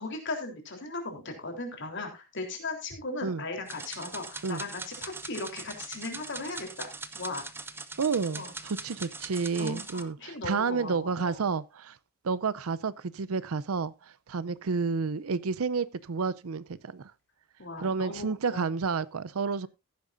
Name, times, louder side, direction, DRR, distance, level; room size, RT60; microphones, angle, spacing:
voice 1, 0.0-7.5 8.3-8.5 9.6-11.4 17.6-18.7, left 2 dB, 55° left, 3.5 m, -37 dB
sound 1, 3.7-10.0, right 3 dB, 10° right, 0.7 m, -42 dB
voice 2, 8.0-11.9 12.2-13.9 14.3-17.1 17.8-19.7, right 5 dB, 75° right, 0.5 m, -30 dB
15.0 x 10.5 x 2.6 m
head